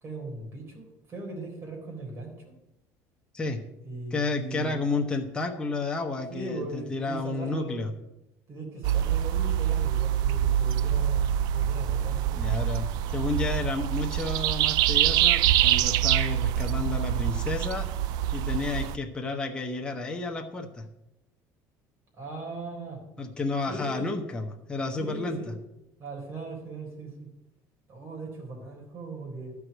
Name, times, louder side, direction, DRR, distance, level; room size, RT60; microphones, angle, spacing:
voice 1, 0.0-2.3 3.8-4.8 6.3-7.9 8.5-12.4 22.1-23.0 23.7-24.2 25.0-25.6 26.0-27.3 27.9-29.6, right 3 dB, 35° right, 0 dB, 3.9 m, -39 dB
voice 2, 4.1-7.9 12.3-12.9 13.1-17.9 18.3-20.8 23.2-25.4, left 3 dB, 15° left, 2 dB, 0.9 m, -31 dB
sound 1, 8.8-19.0, right 11 dB, 70° right, 0.4 m, -25 dB
12.0 x 4.8 x 7.9 m, 0.89 s
cardioid pair, 130°, 7 cm